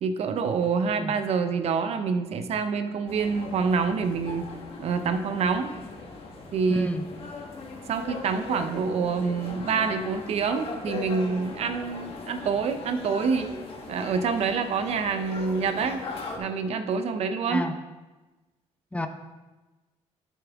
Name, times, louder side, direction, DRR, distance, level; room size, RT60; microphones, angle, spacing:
voice 1, 0.0-4.5 4.8-5.7 6.5-6.9 7.9-13.5 13.9-16.0 16.4-17.6, right 5 dB, 65° right, 8 dB, 0.7 m, -26 dB
sound 1, 3.1-16.4, left 3 dB, 55° left, 1.5 m, -39 dB
voice 2, 6.7-7.0 17.5-17.7 18.9-19.1, left 1 dB, 10° left, 7 dB, 0.6 m, -29 dB
9.3 x 7.3 x 3.6 m, 1.2 s
cardioid pair, 110°, 12 cm